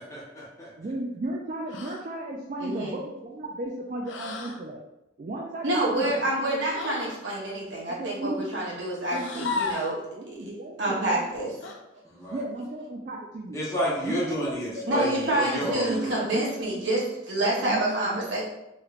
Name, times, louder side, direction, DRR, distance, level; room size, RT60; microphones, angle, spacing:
voice 1, 0.0-0.7 12.0-12.4 13.5-16.2, equal, 15° left, -7 dB, 0.8 m, -31 dB
voice 2, 0.8-4.8 5.2-6.2 6.5-6.6 7.9-8.4 9.1-9.6 10.2-11.8 12.3-13.6 14.0-15.1 15.6-16.8 17.4-18.3, right 1 dB, 40° right, -1 dB, 0.3 m, -35 dB
sound 1, 1.7-2.1 4.1-4.6 6.7-7.2 9.0-10.0 11.6-11.8 13.9-14.4 15.8-16.3, left 4 dB, 75° left, 0.3 m, -35 dB
voice 3, 2.6-3.0 5.6-10.0 10.8-11.5 14.9-18.4, right 1 dB, 80° right, -5 dB, 1.0 m, -27 dB
3.1 x 3.1 x 2.4 m, 0.91 s
head